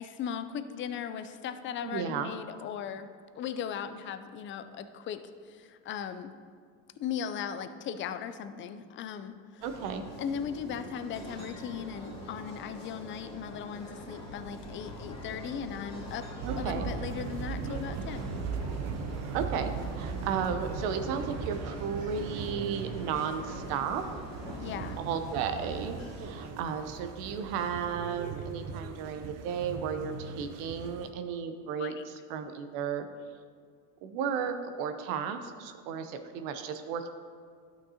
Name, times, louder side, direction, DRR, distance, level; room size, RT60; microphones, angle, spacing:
voice 1, 0.0-3.1 3.4-6.3 7.0-9.6 10.2-16.3 16.6-18.3 24.6-25.0 31.8-32.1, left 8 dB, 25° left, 11 dB, 0.4 m, -38 dB
voice 2, 1.8-2.3 9.6-10.0 16.4-16.9 19.3-24.0 25.0-31.9 32.3-33.1 34.0-37.1, right 7 dB, 60° right, 8 dB, 0.8 m, -34 dB
sound 1, 9.6-26.5, equal, 10° left, 2.1 m, -45 dB
sound 2, 14.2-24.1, left 3 dB, 85° left, 0.9 m, -49 dB
sound 3, 16.4-31.1, right 6 dB, 35° right, 0.5 m, -39 dB
11.5 x 5.9 x 2.8 m, 2.1 s
hypercardioid pair, 95°, 47 cm